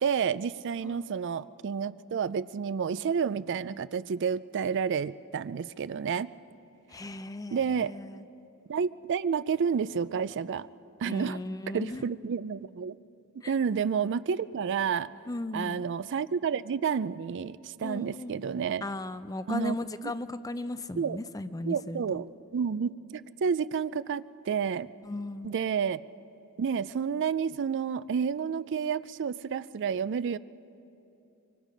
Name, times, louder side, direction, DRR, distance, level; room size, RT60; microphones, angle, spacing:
voice 1, 0.0-6.3 7.5-7.9 8.7-10.7 11.0-11.4 11.7-13.0 13.5-15.1 15.5-18.8 19.5-19.7 21.0-21.2 21.7-24.9 25.4-26.0 26.6-30.4, right 6 dB, 55° right, 16 dB, 0.4 m, -30 dB
voice 2, 6.9-8.2 11.0-12.0 13.4-13.5 15.3-15.9 17.8-18.4 18.8-22.2 25.0-25.5, left 2 dB, 15° left, 12 dB, 0.5 m, -36 dB
24.0 x 24.0 x 5.2 m, 2.7 s
head